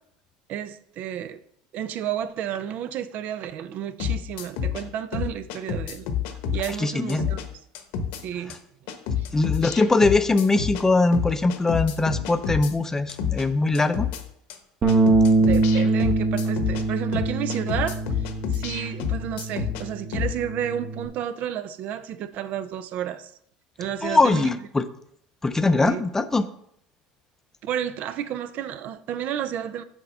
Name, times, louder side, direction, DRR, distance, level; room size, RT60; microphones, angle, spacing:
voice 1, 0.5-1.4 1.7-7.4 8.2-8.6 9.2-9.3 15.4-18.0 18.5-23.3 23.8-24.5 25.7-26.0 27.6-29.8, right 10 dB, 55° right, 0.6 m, -31 dB
sound 1, 4.0-4.8 5.1-6.7 7.1-7.4 7.7-8.2 8.5-8.6 8.9-10.8 11.1-12.7 13.1-13.4 13.7-14.2 14.5-14.6 14.9-16.8 17.1-19.8 20.1-20.3, left 8 dB, 70° left, 1.0 m, -28 dB
voice 2, 6.8-7.3 9.3-14.1 24.0-24.9 25.4-26.4, left 3 dB, 15° left, 0.6 m, -21 dB
Bass guitar, 14.8-21.1, right 3 dB, 35° right, 1.0 m, -24 dB
6.7 x 4.4 x 5.4 m
hypercardioid pair, 90°, 3 cm